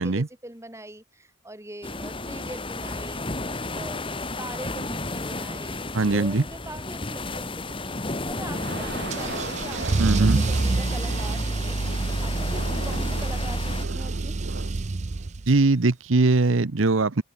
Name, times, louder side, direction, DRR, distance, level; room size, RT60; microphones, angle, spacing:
voice 1, 0.0-3.2 3.7-5.9 6.1-8.0 8.3-11.8 12.2-14.4, right 1 dB, 15° right, 1.7 m, -42 dB
sound 1, 1.8-13.9, left 2 dB, 25° left, 1.8 m, -33 dB
voice 2, 5.9-6.4 10.0-10.4 15.5-17.2, right 3 dB, 75° right, 0.9 m, -21 dB
sound 2, 8.4-15.3, right 2 dB, 55° right, 2.7 m, -38 dB
Car / Engine starting / Accelerating revving vroom, 9.1-15.6, right 3 dB, 35° right, 0.5 m, -27 dB
head